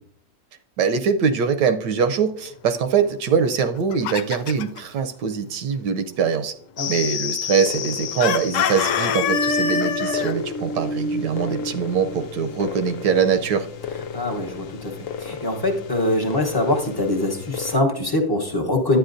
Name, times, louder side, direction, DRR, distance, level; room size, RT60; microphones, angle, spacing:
voice 1, 0.8-6.5 6.9-13.7, right 6 dB, 80° right, 9 dB, 1.2 m, -23 dB
Chicken rooster, 3.6-4.8 8.2-10.3, left 8 dB, 90° left, 1.2 m, -24 dB
sound 1, 6.8-17.8, left 7 dB, 65° left, 0.9 m, -33 dB
sound 2, 8.5-13.2, equal, 40° left, 1.3 m, -31 dB
voice 2, 14.1-19.0, left 2 dB, 20° left, 0 dB, 0.6 m, -23 dB
11.5 x 9.0 x 2.5 m, 0.65 s
omnidirectional pair, 1.8 m